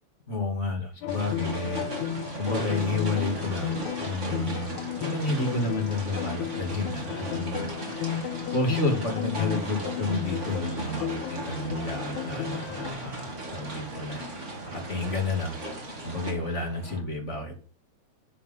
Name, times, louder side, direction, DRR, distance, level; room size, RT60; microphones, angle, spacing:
voice 1, 0.3-1.9 2.4-3.7 4.0-14.2 14.6-15.6 16.0-17.6, left 2 dB, 25° left, 1 dB, 2.6 m, -31 dB
sound 1, 1.0-12.9, left 11 dB, 85° left, 2.3 m, -34 dB
sound 2, 1.1-16.3, right 1 dB, 25° right, 2.6 m, -37 dB
sound 3, 6.6-17.0, right 3 dB, 75° right, 3.9 m, -47 dB
9.9 x 7.0 x 5.5 m, 0.38 s
omnidirectional pair, 3.4 m